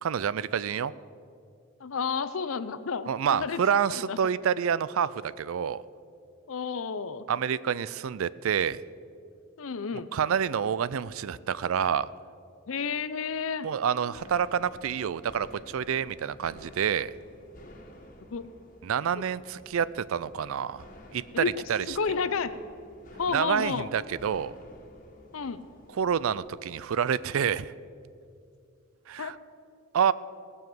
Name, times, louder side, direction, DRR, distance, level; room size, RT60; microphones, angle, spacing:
voice 1, 0.0-0.9 3.1-5.8 7.3-8.8 10.1-12.1 13.6-17.1 18.8-20.8 21.1-21.4 21.7-22.0 23.3-24.5 26.0-27.7 29.1-29.4 29.9-30.1, right 7 dB, 70° right, 18 dB, 0.4 m, -28 dB
voice 2, 1.8-4.2 6.5-7.3 9.6-10.1 12.7-13.7 18.3-18.4 19.2-19.3 21.3-22.5 23.2-23.9 25.3-25.6 29.2-29.3, left 5 dB, 70° left, 13 dB, 0.6 m, -31 dB
sound 1, 14.1-27.5, left 1 dB, 40° left, 1.7 m, -52 dB
18.0 x 7.1 x 7.7 m, 2.4 s
head